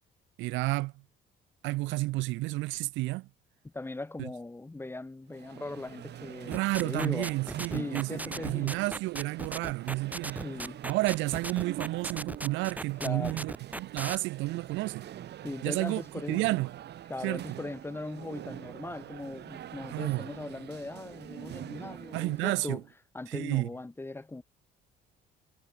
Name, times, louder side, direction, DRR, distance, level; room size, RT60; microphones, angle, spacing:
voice 1, 0.4-0.9 1.6-3.3 4.2-4.3 6.5-10.5 10.8-15.1 15.6-16.0 16.3-16.7 17.2-17.6 19.9-20.3 22.1-22.8 23.3-23.7, right 21 dB, 80° right, 0.4 m, -31 dB
voice 2, 3.6-7.4 7.7-8.8 10.3-10.8 13.0-13.4 15.4-16.6 17.1-22.8 23.1-24.4, left 2 dB, 10° left, 0.8 m, -39 dB
sound 1, 5.3-22.6, right 11 dB, 60° right, 2.3 m, -45 dB
sound 2, 6.5-14.2, right 1 dB, 10° right, 1.2 m, -37 dB
cardioid pair, 95°, 19 cm